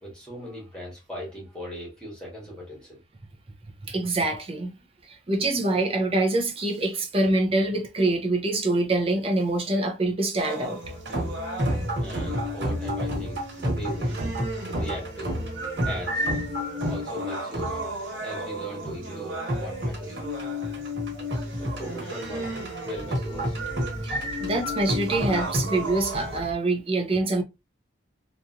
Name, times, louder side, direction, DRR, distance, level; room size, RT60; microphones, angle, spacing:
voice 1, 0.0-3.0 12.0-14.2 14.7-15.5 15.8-16.3 16.8-17.8 18.2-20.2 21.6-22.5 22.8-23.9, equal, 5° left, 1.2 m, -38 dB
voice 2, 3.8-4.7 5.1-10.8 24.1-27.4, right 2 dB, 30° right, 0.5 m, -25 dB
sound 1, 10.4-26.4, left 1 dB, 80° right, 1.3 m, -34 dB
sound 2, 10.8-26.5, equal, 60° right, 1.3 m, -31 dB
3.0 x 2.5 x 2.5 m
head